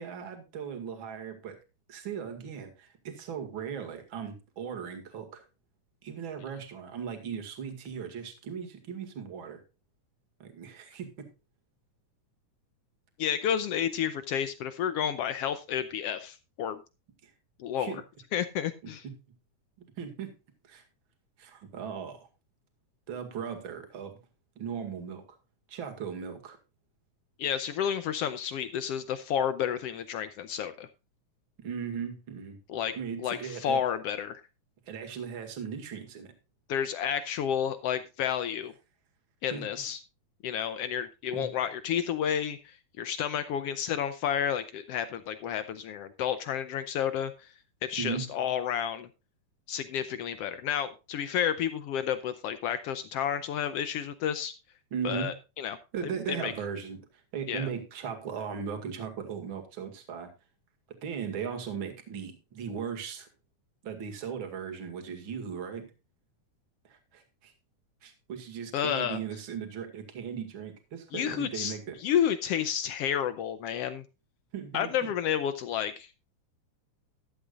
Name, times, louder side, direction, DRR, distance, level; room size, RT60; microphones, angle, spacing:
voice 1, 0.0-1.6 1.9-5.4 6.0-9.6 10.4-11.3 17.2-17.3 17.8-18.0 19.0-19.1 20.0-20.3 20.7-20.8 21.4-22.2 23.1-24.2 24.6-25.4 25.7-26.6 31.6-32.6 32.9-33.8 34.9-36.3 39.5-39.6 41.3-41.5 48.0-48.3 54.9-55.3 55.9-60.3 61.0-63.3 63.8-65.9 66.8-67.5 68.0-72.0 74.5-75.1, right 7 dB, 45° right, 6 dB, 2.5 m, -38 dB
voice 2, 13.2-16.8 17.6-18.0 18.3-19.0 27.4-30.9 32.7-32.9 33.2-34.4 36.7-38.7 39.4-40.0 40.4-47.5 47.8-49.1 49.7-54.5 55.0-55.8 56.3-56.5 57.5-57.7 68.7-69.2 71.1-74.0 74.7-76.1, left 9 dB, 80° left, 12 dB, 1.4 m, -31 dB
13.5 x 11.5 x 2.5 m, 0.28 s
omnidirectional pair, 3.5 m